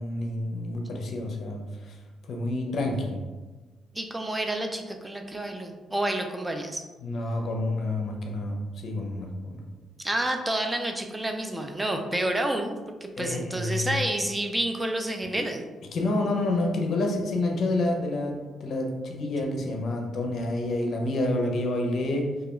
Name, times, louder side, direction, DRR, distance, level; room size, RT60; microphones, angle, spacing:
voice 1, 0.0-2.0 2.3-3.2 7.0-9.6 13.2-14.0 15.4-15.5 15.9-22.3, left 2 dB, 60° left, 1 dB, 0.5 m, -28 dB
voice 2, 3.9-6.8 10.0-15.6, right 1 dB, 10° right, 4 dB, 0.3 m, -29 dB
2.3 x 2.2 x 2.9 m, 1.2 s
cardioid pair, 90°, 0 cm